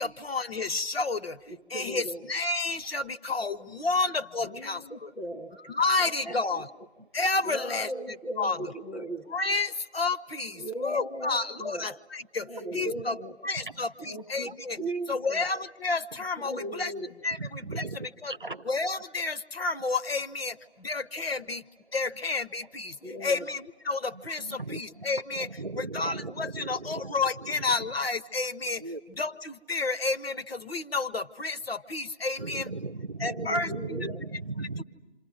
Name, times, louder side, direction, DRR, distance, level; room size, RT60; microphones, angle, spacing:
voice 1, 0.0-1.4 1.7-5.1 5.7-6.7 7.1-7.9 8.4-8.6 9.3-13.2 13.4-14.8 15.1-16.9 17.2-18.3 18.6-21.6 21.9-25.5 25.8-28.8 29.2-32.7 33.2-33.7 34.8-34.9, left 3 dB, 60° left, 12 dB, 0.8 m, -30 dB
voice 2, 1.5-2.2 4.4-6.9 7.4-9.3 10.5-11.9 12.4-13.4 14.0-15.4 16.4-17.1 23.0-23.5 33.2-34.2, right 1 dB, 85° left, 6 dB, 2.0 m, -38 dB
voice 3, 12.7-13.0 13.7-13.8 14.7-14.9 16.1-16.2 17.4-18.0 18.3-18.7 21.4-21.5 22.1-22.2 24.4-27.1 27.4-27.8 28.8-29.0 32.4-34.8, right 3 dB, 50° right, 14 dB, 0.8 m, -38 dB
29.5 x 27.0 x 6.4 m, 1.2 s
figure-of-eight pair, 180°, 33 cm